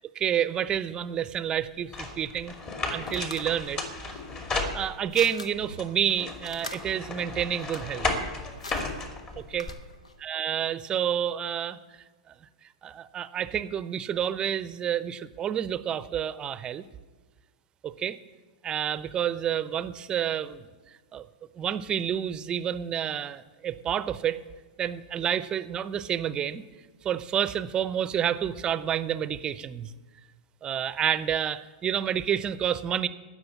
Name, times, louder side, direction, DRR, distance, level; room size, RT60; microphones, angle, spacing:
voice 1, 0.2-2.5 2.9-3.8 4.7-8.1 9.4-9.7 10.2-11.8 12.3-12.4 12.8-16.8 17.8-18.2 18.6-20.7 21.1-21.2 21.6-24.4 24.8-26.6 27.0-29.9 30.6-33.1, right 9 dB, 25° right, 16 dB, 0.7 m, -29 dB
sound 1, 1.9-5.3 5.8-9.7, left 3 dB, 30° left, 2.5 m, -34 dB
sound 2, 2.5-10.2, left 2 dB, 80° left, 1.1 m, -45 dB
15.5 x 6.4 x 8.4 m, 1.3 s
figure-of-eight pair, 100°, 3 cm